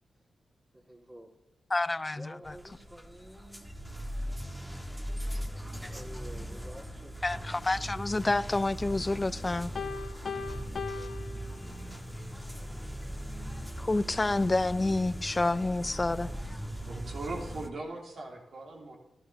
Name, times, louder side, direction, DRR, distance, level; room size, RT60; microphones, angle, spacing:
voice 1, 0.7-1.3 2.1-3.6 5.8-7.5, right 1 dB, 35° right, 3.3 m, -50 dB
voice 2, 1.7-2.3 7.2-9.7 13.9-16.3, left 2 dB, 30° left, 0.5 m, -28 dB
sound 1, 2.4-17.7, equal, 5° right, 1.7 m, -39 dB
Piano, 9.8-12.1, left 5 dB, 65° left, 0.7 m, -39 dB
voice 3, 16.8-19.0, right 2 dB, 70° right, 2.9 m, -39 dB
12.5 x 12.0 x 2.8 m
supercardioid pair, 40°, 0 cm